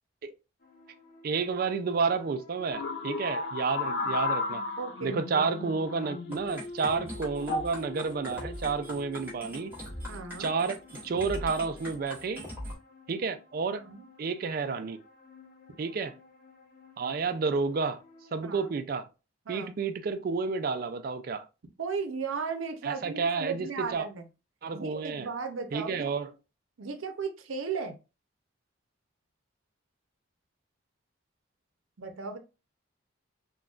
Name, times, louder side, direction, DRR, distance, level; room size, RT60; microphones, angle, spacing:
sound 1, 0.6-18.7, left 3 dB, 45° left, 0.8 m, -50 dB
voice 1, 1.2-4.6 5.0-9.7 10.4-10.8 11.0-12.4 13.1-13.8 14.2-15.0 15.8-16.1 17.0-18.0 18.3-19.1 19.5-21.4 22.8-24.1 24.6-25.3 25.7-26.3, right 4 dB, 45° right, 0.3 m, -30 dB
sound 2, 2.7-6.5 7.4-7.8 8.7-9.1, left 3 dB, 60° left, 0.4 m, -34 dB
voice 2, 4.8-5.5 10.1-10.5 13.7-14.0 18.4-18.7 19.5-19.7 21.8-24.3 24.7-26.1 26.8-27.9 32.0-32.4, right 5 dB, 85° right, 0.6 m, -36 dB
sound 3, 6.3-12.7, equal, 10° right, 1.0 m, -41 dB
3.8 x 2.2 x 2.3 m
head